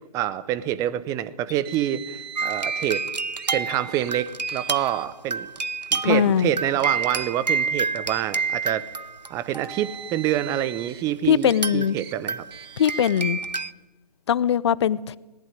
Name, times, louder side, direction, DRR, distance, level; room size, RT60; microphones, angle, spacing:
voice 1, 0.1-3.0 3.5-5.5 5.9-8.8 9.3-12.4, right 12 dB, 15° right, 0.8 m, -27 dB
Chink clink, 1.5-1.6 3.7-3.8 5.6-5.8 7.1-7.3, left 15 dB, 15° left, 0.9 m, -43 dB
Car, 1.6-3.0 3.4-3.6 3.9-4.1 4.5-5.1 5.9-6.1 7.0-7.1 9.4-11.0 11.4-11.6 12.0-12.1 12.5-13.1, right 9 dB, 35° right, 1.5 m, -41 dB
sound 1, 2.4-10.1 11.4-11.9 12.3-13.7, right 4 dB, 90° right, 0.7 m, -29 dB
voice 2, 6.0-6.5 11.3-12.0 12.8-13.4 14.3-15.2, left 9 dB, 40° left, 0.7 m, -21 dB
19.0 x 19.0 x 9.8 m
figure-of-eight pair, 135°, 21 cm